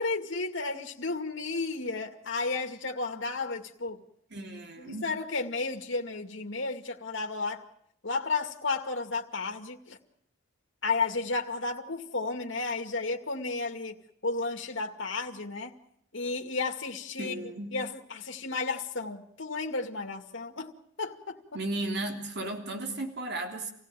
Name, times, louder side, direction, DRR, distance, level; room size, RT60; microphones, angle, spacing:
voice 1, 0.0-4.0 4.8-7.7 8.0-10.0 10.8-14.0 14.2-15.8 16.1-17.4 17.7-21.6, left 3 dB, 65° left, 2.3 m, -33 dB
voice 2, 4.3-5.1 17.2-17.8 21.5-23.7, right 2 dB, 55° right, 3.4 m, -35 dB
27.5 x 17.0 x 9.2 m
head